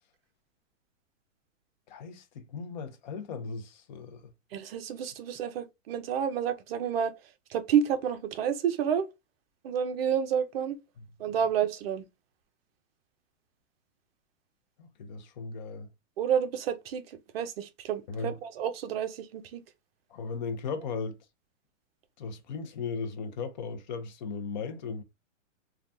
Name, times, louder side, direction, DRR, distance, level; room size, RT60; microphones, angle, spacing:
voice 1, 1.9-4.2 14.8-15.9 18.1-18.4 20.1-21.2 22.2-25.0, left 4 dB, 35° left, 0.5 m, -37 dB
voice 2, 4.5-7.1 7.5-9.1 9.6-10.8 11.2-12.0 16.2-19.6, right 8 dB, 50° right, 0.6 m, -29 dB
3.3 x 2.3 x 2.6 m
hypercardioid pair, 150°, 39 cm